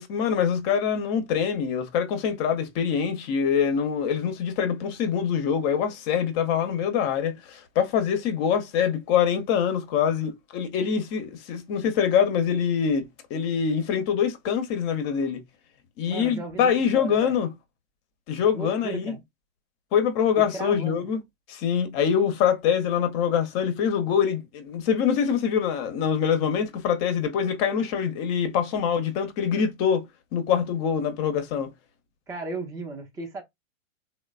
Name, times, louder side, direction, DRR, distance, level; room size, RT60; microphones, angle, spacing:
voice 1, 0.0-15.4 16.0-17.5 18.3-19.1 19.9-21.2 21.5-30.0 30.3-31.7, left 7 dB, 30° left, 0.7 m, -24 dB
voice 2, 16.1-17.4 18.5-19.2 20.4-21.1 32.3-33.4, right 3 dB, 10° right, 0.5 m, -35 dB
3.1 x 2.0 x 2.3 m
hypercardioid pair, 110°, 41 cm